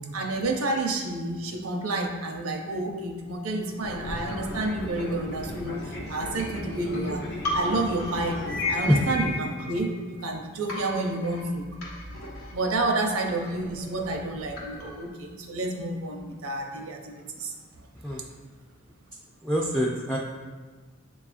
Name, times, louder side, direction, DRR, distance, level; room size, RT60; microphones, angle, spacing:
voice 1, 0.1-7.2 7.5-11.7 12.5-17.5, right 2 dB, 85° right, 1 dB, 0.6 m, -30 dB
Fixed-wing aircraft airplane, 3.8-9.4, left 1 dB, 50° left, 0.6 m, -37 dB
sound 1, 6.4-10.3 10.7-15.1, left 2 dB, 85° left, 1.0 m, -35 dB
voice 2, 19.4-20.2, equal, 5° left, -5 dB, 0.3 m, -24 dB
6.9 x 2.4 x 2.5 m, 1.4 s
head